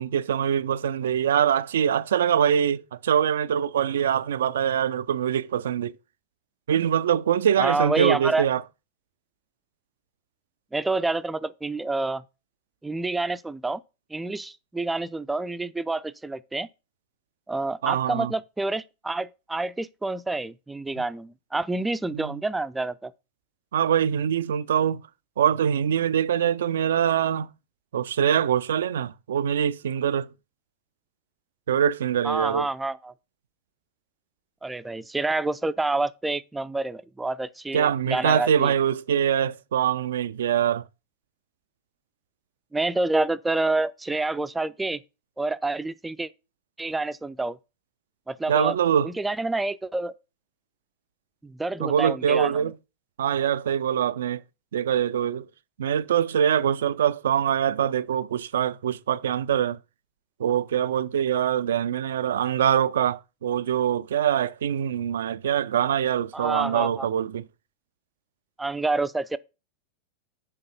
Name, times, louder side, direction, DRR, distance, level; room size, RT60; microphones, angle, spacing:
voice 1, 0.0-5.9 6.7-8.6 17.8-18.3 22.1-22.4 23.7-25.0 25.4-27.5 27.9-30.3 31.7-32.7 37.7-40.8 48.5-49.1 51.8-52.7 53.2-54.4 54.7-55.4 55.8-59.8 60.4-67.4, right 9 dB, 60° right, 0.4 m, -24 dB
voice 2, 7.6-8.4 10.7-12.2 12.8-13.8 14.1-16.7 17.5-23.1 32.2-33.1 34.6-38.7 42.7-45.0 45.4-46.3 46.8-47.6 48.3-48.7 49.0-50.1 51.4-52.6 66.3-67.1 68.6-69.4, right 2 dB, 10° right, 0.5 m, -28 dB
6.6 x 5.3 x 7.0 m
figure-of-eight pair, 90°, 0 cm